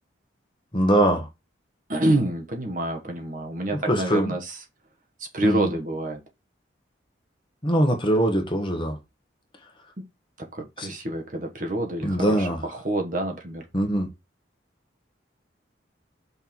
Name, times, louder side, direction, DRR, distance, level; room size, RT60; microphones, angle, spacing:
voice 1, 0.7-1.3 3.7-4.3 5.4-5.7 7.6-9.0 10.8-10.9 12.0-12.6 13.7-14.1, right 1 dB, 25° left, 1.3 m, -22 dB
voice 2, 1.9-4.6 5.3-6.2 10.0-10.1 10.4-13.6, right 1 dB, 40° right, 1.4 m, -27 dB
5.5 x 4.5 x 4.4 m
head